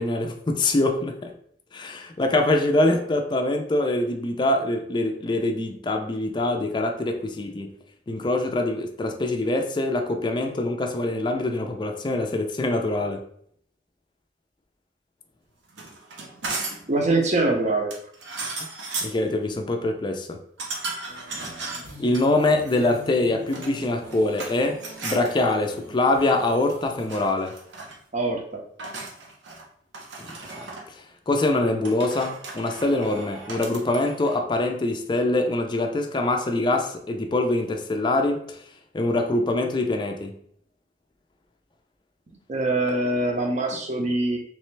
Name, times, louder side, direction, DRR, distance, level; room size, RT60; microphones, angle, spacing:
voice 1, 0.0-1.3 1.7-7.7 8.1-13.2 19.0-20.4 22.0-27.5 31.3-38.6 38.9-40.3, left 2 dB, 25° left, 3 dB, 0.4 m, -24 dB
Tools in a tool box, 15.7-16.9 17.9-19.2 20.6-22.2 23.3-24.5 24.8-25.3 26.5-26.8 27.1-28.0 28.8-29.7 29.9-30.9 31.8-34.4, right 3 dB, 85° right, 0.8 m, -35 dB
voice 2, 16.9-17.9 28.1-28.4 42.5-44.4, right 2 dB, 40° right, 2 dB, 0.7 m, -23 dB
sound 1, 21.1-27.1, equal, 60° right, 1.1 m, -44 dB
3.3 x 3.1 x 3.2 m, 0.64 s
head